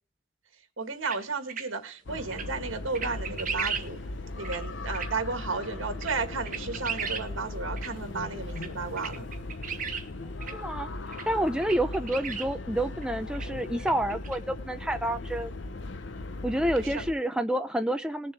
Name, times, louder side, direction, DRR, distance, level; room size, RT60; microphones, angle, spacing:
voice 1, 0.8-4.0 4.4-9.3 16.8-17.0, right 4 dB, 75° right, 1.8 m, -33 dB
sound 1, 1.0-1.2 1.5-1.6 2.3-2.4 2.9-3.8 4.4-4.6 4.9-5.1 5.6-5.7 6.0-6.1 6.5-7.2 7.8-7.9 8.6-8.7 9.0-10.0 10.4-10.5 11.1-11.2 11.6-12.5 13.0-13.1 13.3-13.4 13.8-14.4, right 7 dB, 40° right, 1.8 m, -34 dB
sound 2, 2.1-17.1, left 2 dB, 60° left, 0.8 m, -38 dB
voice 2, 10.5-15.5 16.4-18.3, right 1 dB, 5° right, 0.5 m, -29 dB
20.5 x 6.9 x 3.4 m
head